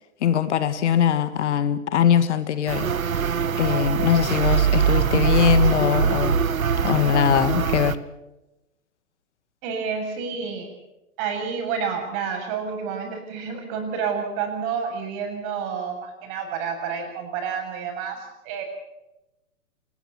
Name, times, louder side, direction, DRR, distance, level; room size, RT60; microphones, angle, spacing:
voice 1, 0.2-2.9 3.6-6.4 6.8-8.0, left 9 dB, 55° left, 12 dB, 1.8 m, -21 dB
sound 1, 2.7-7.9, right 7 dB, 80° right, 1.2 m, -22 dB
voice 2, 9.6-10.7 11.2-18.6, right 6 dB, 40° right, 5 dB, 7.7 m, -29 dB
27.5 x 20.5 x 5.9 m, 0.93 s
figure-of-eight pair, 115°, 41 cm